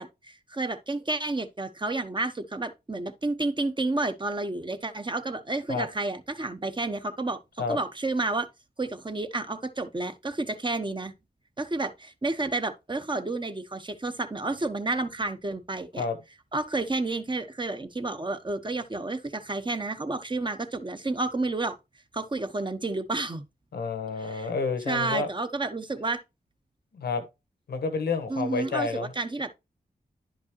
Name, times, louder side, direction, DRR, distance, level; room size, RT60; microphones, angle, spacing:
voice 1, 0.0-7.4 7.7-8.5 8.8-11.1 11.6-16.0 16.5-21.8 22.1-23.4 24.2-24.5 24.9-26.2 28.3-29.5, right 2 dB, 30° right, 1.1 m, -30 dB
voice 2, 23.7-25.3 27.0-27.2 27.7-29.1, left 4 dB, 90° left, 1.2 m, -29 dB
10.5 x 5.2 x 2.9 m
cardioid pair, 40°, 16 cm